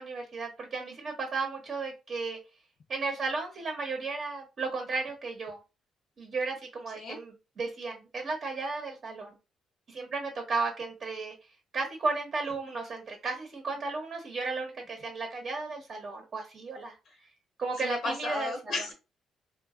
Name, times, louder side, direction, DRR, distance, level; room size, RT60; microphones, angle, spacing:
voice 1, 0.0-2.4 2.9-5.6 6.2-9.4 9.9-11.3 11.7-16.9 17.6-18.7, right 3 dB, 50° right, 2 dB, 0.7 m, -34 dB
voice 2, 17.8-18.9, left 2 dB, 70° left, 2 dB, 0.7 m, -34 dB
3.1 x 2.2 x 2.3 m, 0.28 s
cardioid pair, 90°, 0 cm